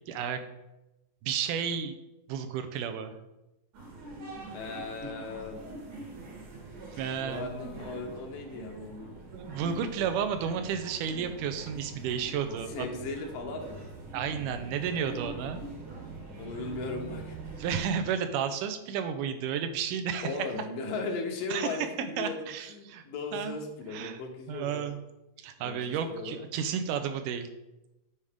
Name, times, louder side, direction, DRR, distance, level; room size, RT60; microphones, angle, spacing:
voice 1, 0.1-0.4 1.2-2.0 2.3-3.1 7.0-7.5 9.3-12.9 14.1-15.6 17.6-20.4 21.5-23.0 23.3-23.6 23.9-24.2 24.5-25.0 25.4-27.5, right 7 dB, 80° right, 8 dB, 2.1 m, -32 dB
sound 1, 3.7-17.9, right 2 dB, 65° right, 3.1 m, -44 dB
voice 2, 4.5-5.7 6.9-9.1 12.7-13.8 16.4-17.4 20.2-24.9 25.6-26.4, left 3 dB, 85° left, 2 dB, 2.7 m, -37 dB
9.7 x 4.9 x 3.6 m, 0.95 s
omnidirectional pair, 3.8 m